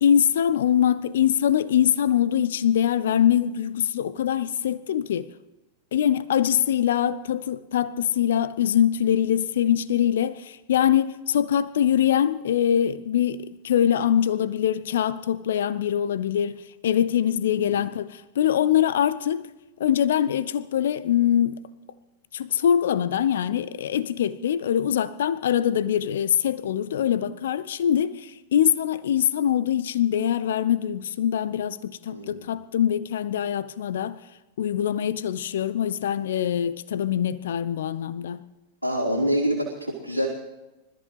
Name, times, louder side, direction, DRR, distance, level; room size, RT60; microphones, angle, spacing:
voice 1, 0.0-5.3 5.9-19.5 19.8-21.6 22.3-34.2 34.6-38.4, left 10 dB, 60° left, 0.6 m, -23 dB
voice 2, 32.1-32.5 38.8-40.3, equal, 85° left, 3.7 m, -26 dB
26.5 x 14.0 x 3.3 m
figure-of-eight pair, 90°, 0 cm